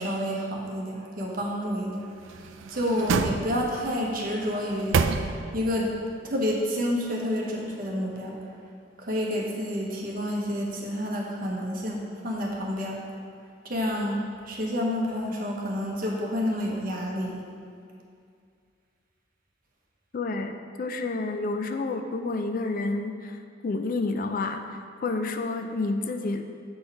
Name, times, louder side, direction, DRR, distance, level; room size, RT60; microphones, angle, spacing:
voice 1, 0.0-2.1 2.3-2.4 2.7-5.9 6.2-8.4 9.0-13.0 13.6-17.4, equal, 45° right, -1 dB, 1.0 m, -29 dB
sound 1, 2.2-3.9 4.4-5.7 6.1-6.2, right 5 dB, 75° right, 0.4 m, -28 dB
voice 2, 20.1-26.5, left 3 dB, 45° left, 6 dB, 0.3 m, -30 dB
7.7 x 4.4 x 4.7 m, 2.3 s
head